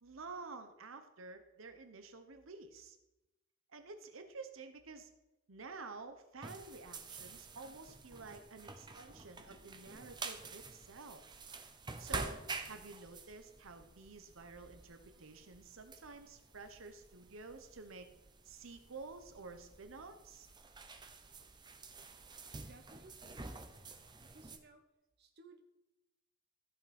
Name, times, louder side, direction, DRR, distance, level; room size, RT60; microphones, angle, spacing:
voice 1, 0.0-3.0 3.7-5.1 5.5-11.2 12.0-12.4 12.6-18.1 18.4-20.5, right 3 dB, 85° right, 7 dB, 1.0 m, -50 dB
sound 1, 6.4-24.6, right 3 dB, 20° right, 0.7 m, -49 dB
voice 2, 22.6-23.6 24.2-24.8 25.2-25.6, right 2 dB, 55° right, 4 dB, 1.0 m, -60 dB
14.5 x 5.9 x 4.3 m, 0.97 s
head